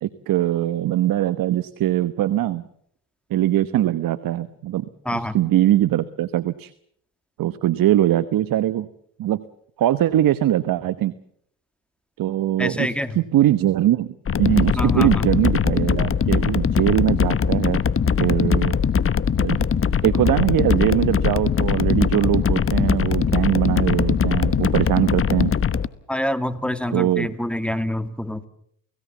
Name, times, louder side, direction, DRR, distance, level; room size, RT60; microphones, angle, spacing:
voice 1, 0.0-2.6 3.3-4.9 5.1-6.7 7.4-8.9 9.2-9.4 9.8-11.1 12.2-17.8 18.2-18.8 19.4-19.6 20.0-25.5 26.9-27.3, right 13 dB, 65° right, 13 dB, 1.1 m, -21 dB
voice 2, 5.1-5.4 12.6-13.2 14.7-15.3 26.1-28.5, left 1 dB, 5° left, 11 dB, 2.2 m, -26 dB
sound 1, 14.3-25.9, left 7 dB, 35° left, 1.2 m, -21 dB
29.0 x 17.0 x 7.2 m, 0.69 s
supercardioid pair, 70°, 37 cm